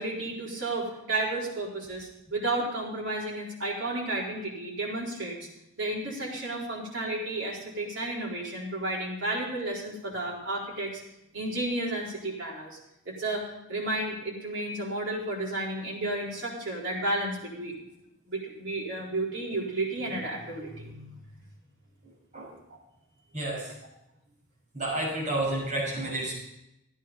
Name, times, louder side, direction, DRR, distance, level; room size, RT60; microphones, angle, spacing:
voice 1, 0.0-5.5 5.8-11.0 11.3-12.8 13.0-17.7 18.3-21.2, right 2 dB, 60° right, -4 dB, 4.2 m, -32 dB
voice 2, 22.0-22.5 23.3-23.7 24.7-26.3, right 1 dB, 35° right, -5 dB, 6.2 m, -31 dB
14.0 x 9.8 x 5.2 m, 0.86 s
head